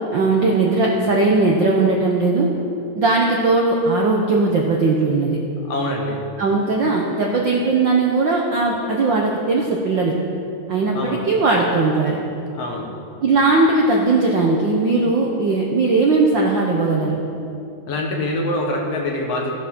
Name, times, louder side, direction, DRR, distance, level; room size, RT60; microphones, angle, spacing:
voice 1, 0.1-2.5 2.9-5.4 6.4-10.1 10.7-12.2 13.2-17.2, right 3 dB, 65° right, -1 dB, 1.1 m, -18 dB
voice 2, 5.7-6.2 10.9-11.2 12.5-12.9 17.9-19.5, left 1 dB, 60° left, 0 dB, 2.3 m, -24 dB
15.0 x 7.9 x 6.1 m, 2.6 s
omnidirectional pair, 3.3 m